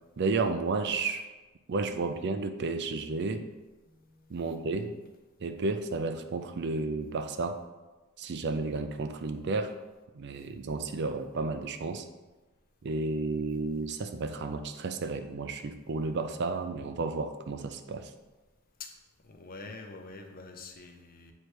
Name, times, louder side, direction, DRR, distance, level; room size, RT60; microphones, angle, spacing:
voice 1, 0.2-1.3 1.7-3.5 4.3-4.9 5.4-7.6 8.2-9.8 10.1-12.1 12.8-18.1, right 3 dB, 50° right, 8 dB, 0.4 m, -32 dB
voice 2, 19.2-21.3, left 3 dB, 40° left, 4 dB, 0.7 m, -45 dB
8.0 x 3.2 x 4.5 m, 1.2 s
head